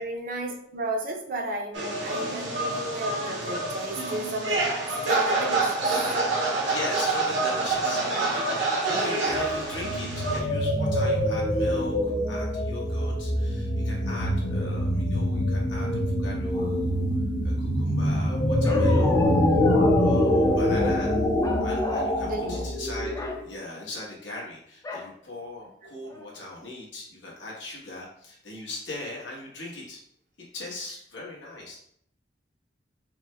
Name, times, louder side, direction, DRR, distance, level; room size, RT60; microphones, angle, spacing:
voice 1, 0.0-5.8 22.2-22.7 25.8-25.9, right 2 dB, 50° right, 2 dB, 0.5 m, -33 dB
sound 1, 1.7-10.4, right 2 dB, 80° right, 0.9 m, -27 dB
voice 2, 6.7-17.0 17.4-19.6 20.0-21.2 21.6-23.1 23.4-30.0 30.5-31.7, left 2 dB, 85° left, -4 dB, 1.2 m, -39 dB
sound 2, 9.3-23.5, left 1 dB, 50° left, 0.7 m, -25 dB
Bark, 18.6-20.8 21.4-22.2 22.5-22.7 23.1-23.4 24.8-25.1 25.7-25.8 26.1-26.5, left 3 dB, 20° left, 0.3 m, -34 dB
4.8 x 2.1 x 2.3 m, 0.68 s
head